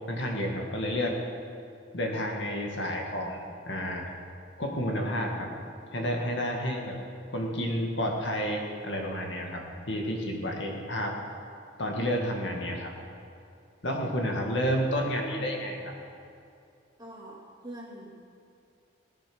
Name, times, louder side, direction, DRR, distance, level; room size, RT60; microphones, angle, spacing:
voice 1, 0.1-1.2 1.9-4.1 4.6-5.5 5.9-7.0 7.3-11.2 11.8-12.9 13.8-15.9, equal, 70° left, 1 dB, 2.0 m, -30 dB
voice 2, 17.0-18.1, right 1 dB, 20° right, -4 dB, 2.7 m, -44 dB
17.5 x 10.0 x 6.2 m, 2.6 s
head